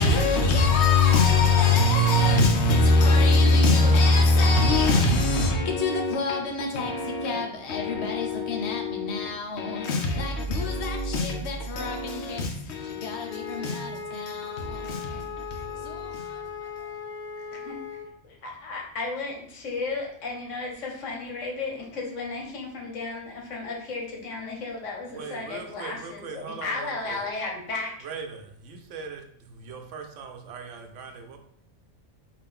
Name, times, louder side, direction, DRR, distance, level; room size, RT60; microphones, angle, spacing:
voice 1, 0.0-16.5 16.8-16.9, left 2 dB, 70° left, 0.9 m, -23 dB
voice 2, 1.6-2.0 3.9-4.3 4.8-5.2 6.7-6.9 7.3-8.0 14.1-14.4 17.5-17.8 18.2-27.9, left 3 dB, 85° left, 1.2 m, -35 dB
Wind instrument woodwind instrument, 13.3-18.1, left 6 dB, 10° left, 0.7 m, -37 dB
voice 3, 25.1-27.3 28.0-31.4, right 5 dB, 80° right, 0.9 m, -40 dB
3.2 x 2.4 x 3.7 m
omnidirectional pair, 1.3 m